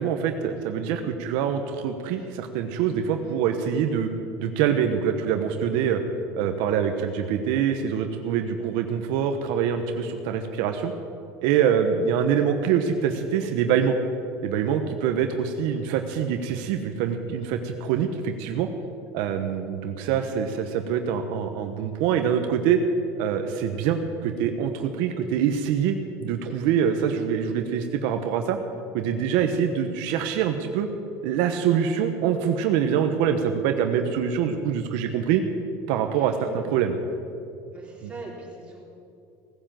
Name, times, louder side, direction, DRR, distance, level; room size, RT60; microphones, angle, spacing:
voice 1, 0.0-4.1 4.4-6.0 6.4-10.9 11.4-14.0 14.4-18.7 19.1-22.8 23.2-28.6 28.9-30.9 31.2-35.4 35.9-36.9 38.0-38.1, right 8 dB, 75° right, 6 dB, 1.0 m, -25 dB
voice 2, 36.1-36.8 37.7-38.8, right 2 dB, 15° right, -4 dB, 4.0 m, -42 dB
17.0 x 10.0 x 7.6 m, 2.6 s
cardioid pair, 140°, 8 cm